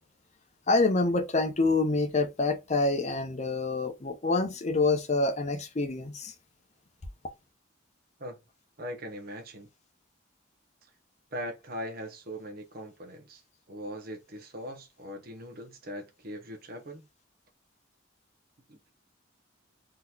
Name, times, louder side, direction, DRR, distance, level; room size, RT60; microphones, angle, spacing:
voice 1, 0.7-6.3, left 3 dB, 35° left, 0.6 m, -26 dB
voice 2, 8.8-9.7 11.3-13.4 13.7-17.1 18.7-18.8, equal, 45° right, 0.8 m, -40 dB
3.8 x 2.9 x 2.3 m
head